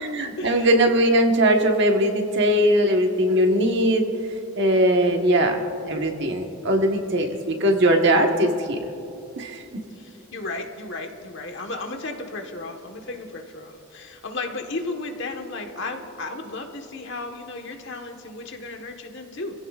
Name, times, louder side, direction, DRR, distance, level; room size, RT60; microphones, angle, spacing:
voice 1, 0.0-4.0 4.6-8.8 9.4-9.6, right 1 dB, 50° right, 3 dB, 1.3 m, -20 dB
voice 2, 10.0-19.5, left 2 dB, 55° left, 4 dB, 1.4 m, -34 dB
26.5 x 16.0 x 2.5 m, 2.9 s
head